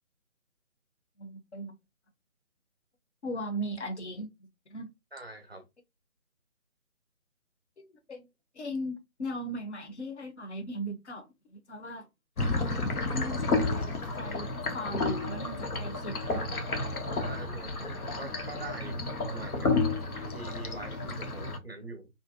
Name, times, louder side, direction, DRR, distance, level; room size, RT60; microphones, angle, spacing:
voice 1, 1.2-1.8 3.2-4.3 4.7-4.9 7.8-8.3 8.5-12.1 13.0-14.5 14.7-16.5 17.0-17.2, equal, 50° left, 0.7 m, -38 dB
voice 2, 5.1-5.6 17.0-19.8 20.3-22.1, right 2 dB, 45° right, 0.5 m, -43 dB
sound 1, 12.4-21.6, left 3 dB, 90° left, 0.7 m, -31 dB
2.6 x 2.1 x 2.3 m
figure-of-eight pair, 150°, 43 cm